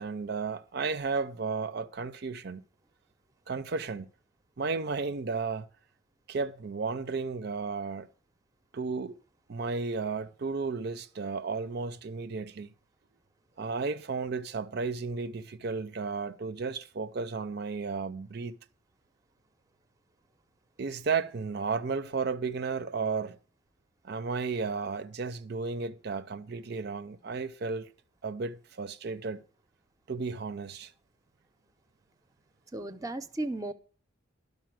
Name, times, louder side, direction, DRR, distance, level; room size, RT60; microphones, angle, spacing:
voice 1, 0.0-2.6 3.5-4.1 4.6-5.7 6.3-8.1 8.7-9.2 9.5-12.7 13.6-18.5 20.8-23.4 24.0-27.9 28.2-29.4 30.1-30.9, right 4 dB, 55° right, 0.5 m, -33 dB
voice 2, 32.7-33.7, right 2 dB, 20° right, 0.7 m, -35 dB
12.0 x 5.4 x 7.5 m
head